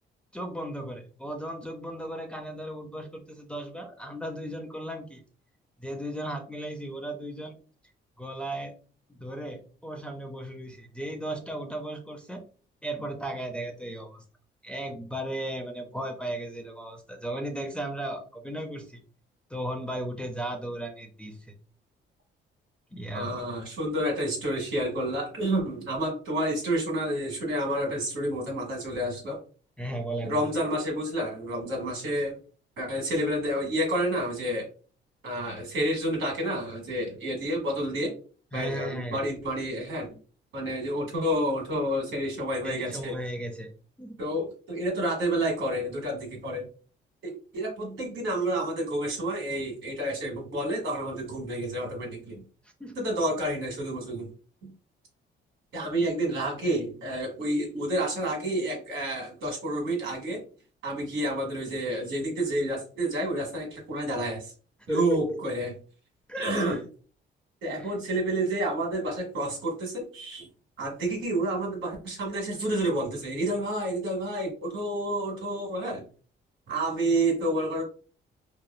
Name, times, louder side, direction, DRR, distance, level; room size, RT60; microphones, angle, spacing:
voice 1, 0.3-5.2 5.8-7.6 8.2-8.7 9.1-12.4 12.8-14.2 14.6-19.0 19.5-21.5 22.9-23.4 29.8-30.5 38.5-39.2 42.6-43.7 44.0-44.2 52.8-53.1 64.9-65.4 66.3-66.8 67.7-67.9 75.8-75.9, right 1 dB, 5° left, 2 dB, 0.5 m, -36 dB
voice 2, 23.1-29.4 30.2-32.4 32.8-34.7 35.2-38.1 38.5-40.1 40.5-43.1 44.2-46.7 47.2-52.4 52.9-54.3 54.6-54.7 55.7-60.4 60.8-64.5 64.9-65.7 66.4-66.8 67.6-70.5 70.8-76.0 76.7-77.8, right 1 dB, 75° right, 0 dB, 1.4 m, -29 dB
3.0 x 2.3 x 2.2 m, 0.39 s
cardioid pair, 90°, 20 cm